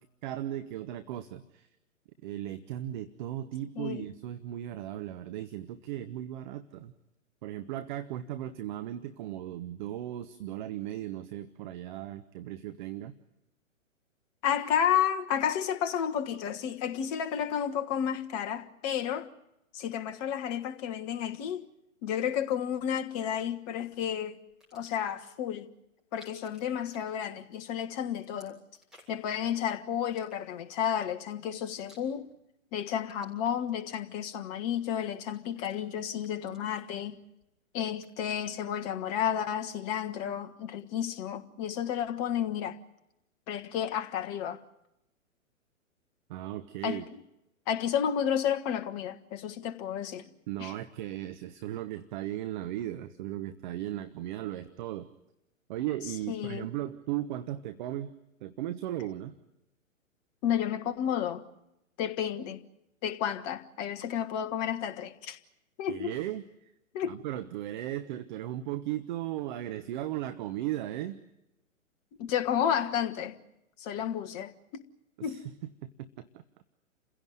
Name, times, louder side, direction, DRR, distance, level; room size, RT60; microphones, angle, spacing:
voice 1, 0.2-1.7 2.2-6.9 7.4-13.1 46.3-47.1 50.5-55.1 55.7-58.1 58.4-59.4 65.9-66.7 67.0-71.2 75.2-75.5 75.8-76.4, right 13 dB, 35° right, 1.1 m, -36 dB
voice 2, 3.8-4.1 14.4-19.3 19.7-21.7 22.0-24.4 24.7-25.7 26.1-28.6 29.1-32.3 32.7-37.2 37.7-42.8 43.5-44.6 46.8-47.0 47.7-50.2 50.6-50.7 56.3-56.7 60.4-61.4 62.0-62.6 63.0-65.4 65.8-66.1 66.9-67.2 72.2-73.4 73.8-74.8 75.2-75.4, left 9 dB, 30° left, 1.5 m, -31 dB
sound 1, 24.5-25.1 26.0-27.7 27.9-29.3 30.0-30.8 31.4-32.5 32.8-34.5 35.0-35.8 36.2-37.5 37.8-38.7, equal, ahead, 7.0 m, -60 dB
29.5 x 16.5 x 9.2 m
figure-of-eight pair, 120°, 40 cm